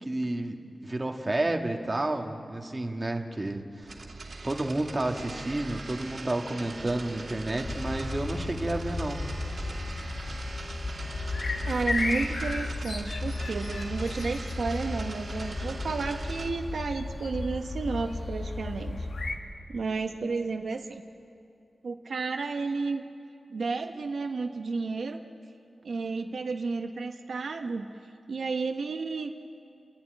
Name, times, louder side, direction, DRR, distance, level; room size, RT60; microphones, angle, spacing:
voice 1, 0.0-4.0 4.4-9.2, right 2 dB, 25° right, 3 dB, 1.5 m, -31 dB
sound 1, 3.8-16.5, right 3 dB, 45° right, 2.3 m, -41 dB
sound 2, 7.6-19.4, left 2 dB, 55° left, 1.7 m, -34 dB
voice 2, 11.6-19.1 19.7-21.0 21.8-23.0 23.5-25.2 25.8-27.9 28.3-29.3, right 4 dB, 70° right, 5 dB, 0.8 m, -32 dB
30.0 x 11.5 x 9.8 m, 2.5 s
wide cardioid pair, 120°, 0 cm